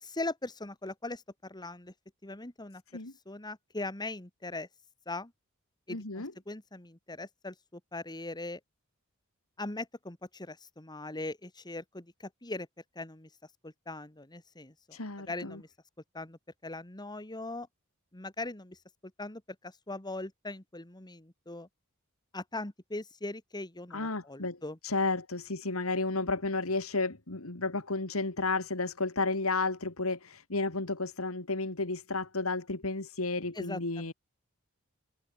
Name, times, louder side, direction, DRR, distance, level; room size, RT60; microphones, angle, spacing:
voice 1, 0.0-1.9 2.2-2.8 3.3-4.7 5.1-5.3 5.9-8.6 9.6-12.7 13.0-13.3 13.6-15.0 15.3-15.7 16.1-17.7 18.1-18.8 19.2-21.7 22.3-24.8 33.5-34.1, left 2 dB, 20° left, 1.9 m, -40 dB
voice 2, 5.9-6.3 14.9-15.6 23.9-24.6 24.8-34.1, left 3 dB, 70° left, 2.5 m, -32 dB
head